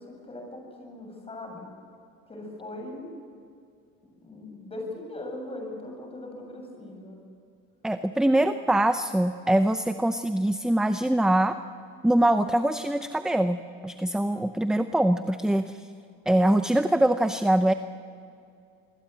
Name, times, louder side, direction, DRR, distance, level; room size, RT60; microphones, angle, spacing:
voice 1, 0.0-1.7 2.3-3.1 4.2-7.2, left 1 dB, 20° left, 2 dB, 7.8 m, -39 dB
voice 2, 7.8-11.6 12.0-15.9 16.3-17.7, right 1 dB, ahead, 9 dB, 0.6 m, -23 dB
25.5 x 21.5 x 8.5 m, 2.4 s
cardioid pair, 125°, 30 cm